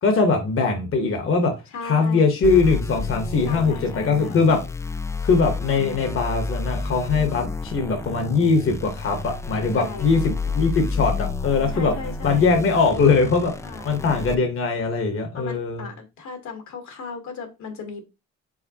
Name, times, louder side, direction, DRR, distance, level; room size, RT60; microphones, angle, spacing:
voice 1, 0.0-1.5 1.8-4.6 5.2-11.9 12.2-13.5 13.8-15.9, left 4 dB, 45° left, 4 dB, 1.1 m, -21 dB
voice 2, 1.7-2.3 3.4-4.4 9.7-10.1 11.7-12.5 12.8-13.1 13.6-14.0 15.3-18.0, left 4 dB, 70° left, 5 dB, 1.3 m, -36 dB
sound 1, 2.4-14.3, left 4 dB, 10° left, 0.3 m, -30 dB
4.9 x 3.8 x 2.8 m, 0.26 s
cardioid pair, 90°, 30 cm